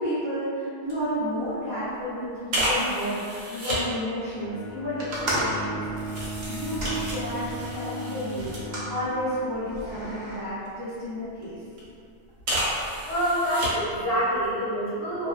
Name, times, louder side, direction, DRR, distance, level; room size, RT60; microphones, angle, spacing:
voice 1, 0.0-8.5 8.9-11.6, equal, 30° right, -14 dB, 0.4 m, -31 dB
sound 1, 0.9-1.0 1.4-1.6 2.5-3.9 4.6-9.1 9.5-10.8 11.4-11.8 12.4-14.0 14.3-14.5, right 1 dB, 85° right, 1.1 m, -32 dB
Bowed string instrument, 4.3-9.2, right 1 dB, 85° left, 1.0 m, -36 dB
sound 2, 5.0-7.7 8.4-8.9 9.7-10.4, right 1 dB, 65° right, 0.7 m, -32 dB
voice 2, 13.0-15.3, equal, 60° left, -9 dB, 0.8 m, -26 dB
2.3 x 2.2 x 2.4 m, 2.4 s
omnidirectional pair, 1.3 m